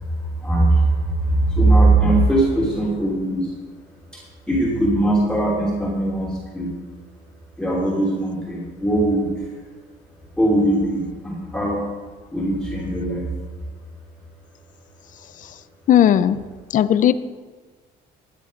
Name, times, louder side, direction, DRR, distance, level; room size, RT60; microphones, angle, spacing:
voice 1, 0.4-3.5 4.5-6.7 7.6-9.3 10.4-11.8 12.3-13.3, right 2 dB, 5° left, -5 dB, 2.8 m, -20 dB
voice 2, 15.9-16.4 16.7-17.1, left 10 dB, 50° left, 15 dB, 0.6 m, -15 dB
14.0 x 8.4 x 5.2 m, 1.4 s
cardioid pair, 110°, 17 cm